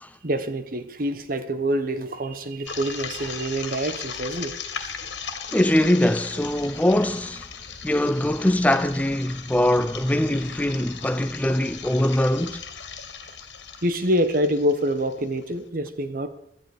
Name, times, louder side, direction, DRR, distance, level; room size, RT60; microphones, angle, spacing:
voice 1, 0.2-4.5 13.8-16.3, equal, 50° right, 1.3 m, -26 dB
sound 1, 2.7-15.5, left 6 dB, 85° left, 2.3 m, -38 dB
voice 2, 5.5-7.5 7.8-12.6, left 1 dB, 10° left, 0.5 m, -22 dB
17.0 x 12.5 x 5.1 m
head